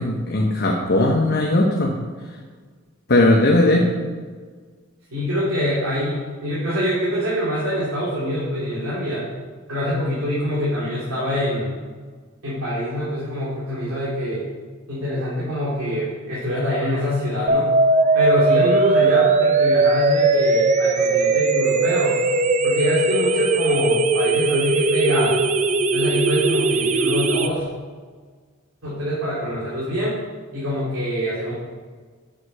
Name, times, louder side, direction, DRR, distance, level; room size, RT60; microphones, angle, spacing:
voice 1, 0.0-2.0 3.1-3.8, left 1 dB, 50° left, 0 dB, 0.9 m, -18 dB
voice 2, 5.1-9.2 9.7-11.8 12.4-14.5 14.9-17.7 18.1-22.2 22.6-25.4 25.9-27.7 28.8-30.2 30.5-31.5, equal, 80° right, -9 dB, 2.8 m, -24 dB
sound 1, 17.5-27.5, right 3 dB, 35° right, 0.6 m, -19 dB
7.5 x 6.5 x 5.6 m, 1.5 s
head